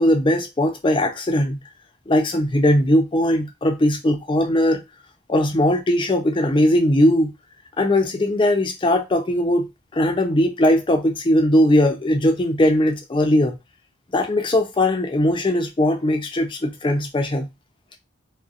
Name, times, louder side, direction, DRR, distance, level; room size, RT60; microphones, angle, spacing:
voice 1, 0.0-1.6 2.1-4.8 5.3-7.3 7.8-13.6 14.1-17.5, left 1 dB, 25° left, 0.4 m, -19 dB
2.6 x 2.0 x 2.4 m
head